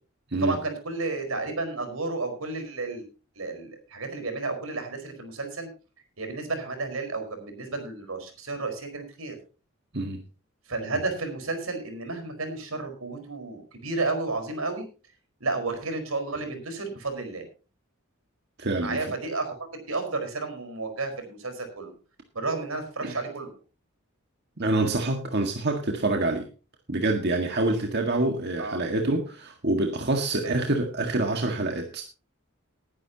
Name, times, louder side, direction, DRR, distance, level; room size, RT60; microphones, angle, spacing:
voice 1, 0.4-3.0 3.4-5.7 6.2-9.4 10.7-14.9 15.4-17.4 18.8-21.9 22.3-23.5 28.6-28.8 30.3-30.6, right 3 dB, 85° right, 6 dB, 4.8 m, -32 dB
voice 2, 18.6-19.0 23.0-23.1 24.6-26.5 26.9-32.0, right 2 dB, 55° right, 3 dB, 1.8 m, -26 dB
19.5 x 10.5 x 2.9 m, 0.34 s
head